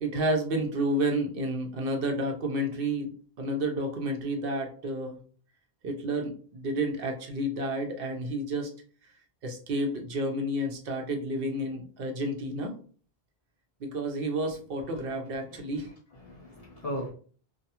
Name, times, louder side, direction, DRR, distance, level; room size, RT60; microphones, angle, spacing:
voice 1, 0.0-3.1 3.4-5.2 5.8-8.7 9.4-12.7 13.8-15.9, right 1 dB, 65° right, 3 dB, 0.8 m, -30 dB
voice 2, 15.5-17.1, equal, 45° left, -2 dB, 0.5 m, -38 dB
2.3 x 2.2 x 2.8 m, 0.43 s
omnidirectional pair, 1.0 m